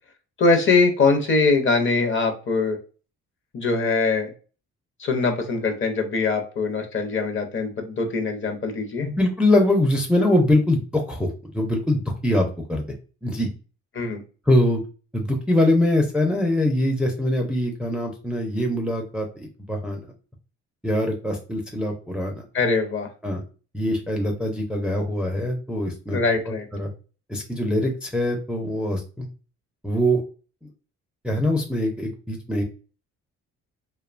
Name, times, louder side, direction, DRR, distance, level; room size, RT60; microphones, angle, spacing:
voice 1, 0.4-2.8 3.5-4.3 5.0-9.1 13.9-14.2 22.5-23.1 26.1-26.7, left 3 dB, 40° left, 5 dB, 0.7 m, -22 dB
voice 2, 9.0-12.8 13.2-13.5 14.5-14.8 15.1-20.0 20.8-22.4 23.2-23.4 23.7-26.2 26.5-26.9 27.3-29.3 29.8-30.2 31.2-32.6, left 1 dB, 5° right, 1 dB, 0.4 m, -23 dB
2.6 x 2.2 x 2.4 m, 0.36 s
cardioid pair, 90°, 30 cm